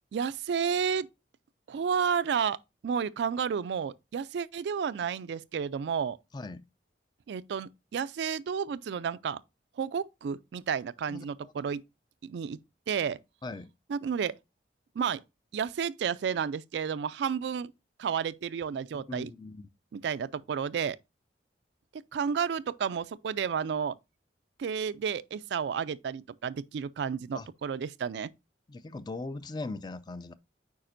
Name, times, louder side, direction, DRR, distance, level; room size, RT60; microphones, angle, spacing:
voice 1, 0.1-1.1 1.7-6.2 7.3-9.4 9.8-11.8 12.2-12.6 12.9-13.2 13.9-14.3 15.0-15.2 15.5-17.7 18.0-19.3 19.9-21.0 21.9-24.0 24.6-28.3, right 7 dB, 75° right, 0.3 m, -31 dB
voice 2, 6.3-6.7 11.1-11.5 13.4-13.7 19.1-19.7 27.3-27.5 28.7-30.3, left 2 dB, 25° left, 0.3 m, -39 dB
8.5 x 4.9 x 2.5 m
head